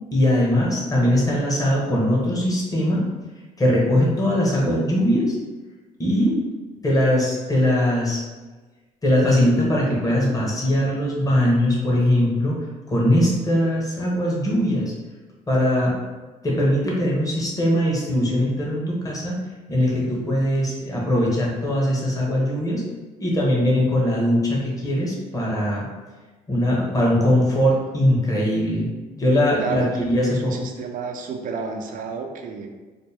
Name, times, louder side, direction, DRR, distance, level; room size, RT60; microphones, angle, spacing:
voice 1, 0.1-3.0 3.6-5.3 6.0-6.4 6.8-8.2 9.0-12.6 12.9-14.9 15.5-15.9 16.4-19.4 19.7-22.8 23.2-25.9 26.5-28.9 29.2-30.5, left 1 dB, 20° left, -4 dB, 1.3 m, -21 dB
voice 2, 29.6-32.7, right 5 dB, 55° right, 3 dB, 0.6 m, -31 dB
4.2 x 2.2 x 3.4 m, 1.3 s
supercardioid pair, 85°, 16 cm